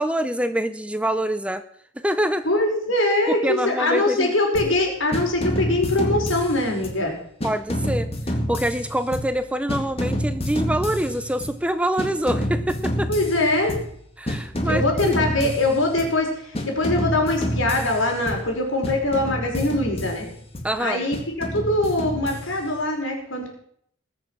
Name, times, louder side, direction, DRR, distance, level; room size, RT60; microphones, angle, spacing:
voice 1, 0.0-1.6 2.0-2.5 3.3-4.3 7.4-13.1 14.2-15.1 15.4-15.5 20.6-21.0, right 1 dB, 5° right, 11 dB, 0.6 m, -25 dB
voice 2, 2.4-7.1 13.1-13.8 14.6-20.3 20.8-23.5, left 2 dB, 75° left, 1 dB, 5.0 m, -22 dB
sound 1, 4.5-4.8 5.1-7.1 7.4-9.4 9.7-11.6 12.0-14.0 14.3-16.2 16.5-18.5 18.8-20.7 21.1-22.8, equal, 30° left, 2.2 m, -28 dB
20.0 x 6.9 x 7.3 m, 0.65 s
head